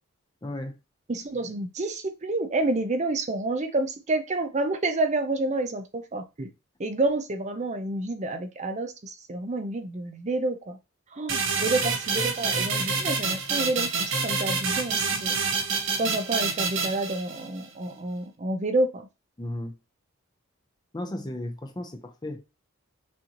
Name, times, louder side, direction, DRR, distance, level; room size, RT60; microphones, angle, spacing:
voice 1, 0.4-0.8 11.6-11.7 19.4-19.7 20.9-22.4, left 1 dB, 20° left, 0.5 m, -35 dB
voice 2, 1.1-6.5 6.8-10.8 11.1-15.4 16.0-19.1, right 2 dB, 30° right, 0.5 m, -29 dB
sound 1, 11.3-17.6, right 4 dB, 60° right, 1.1 m, -27 dB
6.2 x 2.7 x 2.9 m
head